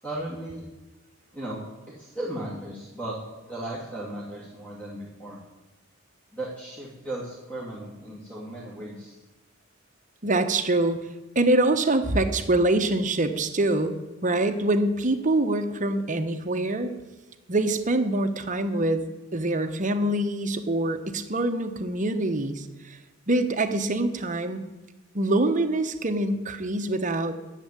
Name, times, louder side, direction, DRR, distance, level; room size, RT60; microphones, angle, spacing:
voice 1, 0.0-0.7 1.3-3.2 3.4-5.4 6.3-9.2, right 1 dB, 5° left, -7 dB, 2.5 m, -36 dB
voice 2, 10.2-11.0 11.3-16.9 17.5-23.0 23.3-24.6 25.1-27.4, right 2 dB, 40° right, 8 dB, 1.0 m, -25 dB
10.5 x 7.5 x 9.7 m, 1.1 s
head